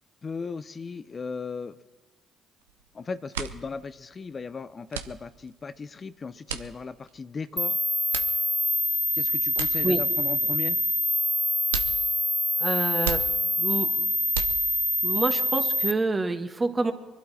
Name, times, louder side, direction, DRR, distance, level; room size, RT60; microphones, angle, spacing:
voice 1, 0.2-1.8 2.9-7.8 9.1-10.8, left 4 dB, 40° left, 12 dB, 0.6 m, -37 dB
sound 1, 2.6-2.9 3.2-15.1, right 8 dB, 90° right, 0.7 m, -38 dB
sound 2, 7.6-15.9, left 1 dB, ahead, 0.8 m, -25 dB
voice 2, 12.6-13.2 13.6-13.9 15.0-16.9, right 3 dB, 30° right, 6 dB, 1.7 m, -27 dB
24.0 x 11.5 x 4.3 m, 1.2 s
hypercardioid pair, 50°, 0 cm